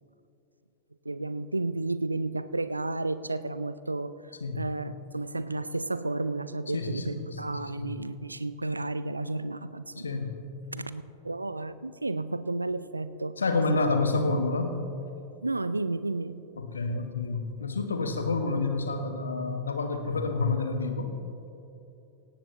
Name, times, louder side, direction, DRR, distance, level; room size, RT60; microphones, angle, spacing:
voice 1, 1.1-4.2 4.5-10.1 10.7-13.4 13.7-13.8 15.4-16.4, right 2 dB, 80° right, 15 dB, 0.4 m, -32 dB
voice 2, 6.7-7.6 10.0-10.4 13.4-14.8 16.6-21.1, left 3 dB, 75° left, 7 dB, 1.3 m, -28 dB
17.5 x 17.0 x 3.2 m, 2.8 s
figure-of-eight pair, 90°, 0 cm